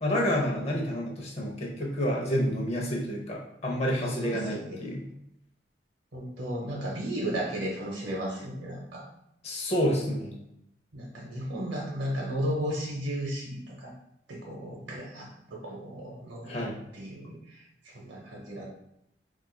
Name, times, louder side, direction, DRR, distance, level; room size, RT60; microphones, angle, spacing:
voice 1, 0.0-5.1 9.4-10.4 16.5-16.8, equal, 35° left, -2 dB, 0.7 m, -29 dB
voice 2, 4.2-4.8 6.1-9.0 10.9-13.9 14.3-16.6 16.9-18.7, equal, 80° right, -2 dB, 0.7 m, -34 dB
4.3 x 2.4 x 2.2 m, 0.78 s
head